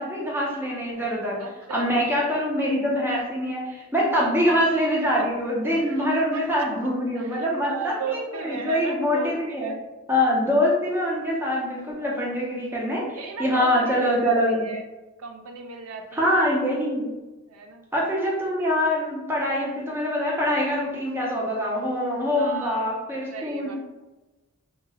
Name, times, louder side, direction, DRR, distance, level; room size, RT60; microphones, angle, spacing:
voice 1, 0.0-1.4 1.7-9.7 10.1-14.7 16.1-17.1 17.9-23.8, equal, 10° right, -4 dB, 0.5 m, -24 dB
voice 2, 1.4-1.9 4.1-4.3 5.2-5.3 5.9-6.7 7.1-9.8 11.9-12.1 13.1-14.8 15.2-16.5 17.5-17.9 22.4-22.9 23.3-23.8, right 5 dB, 90° right, 4 dB, 0.4 m, -35 dB
2.2 x 2.1 x 3.3 m, 1.1 s
head